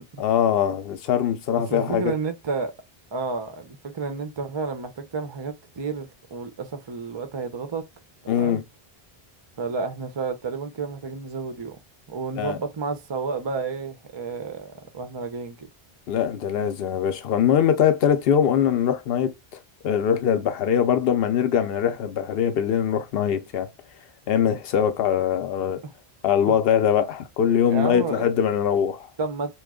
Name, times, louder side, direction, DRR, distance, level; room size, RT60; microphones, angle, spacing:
voice 1, 0.2-2.1 8.3-8.6 12.4-12.6 16.1-23.7 24.3-25.8 26.2-29.1, left 8 dB, 75° left, 0.8 m, -22 dB
voice 2, 1.5-2.7 3.1-7.8 8.2-8.6 9.6-11.8 12.1-15.7 25.8-25.9 27.6-28.3 29.2-29.6, right 4 dB, 40° right, 0.4 m, -31 dB
3.0 x 2.3 x 3.5 m
omnidirectional pair, 1.0 m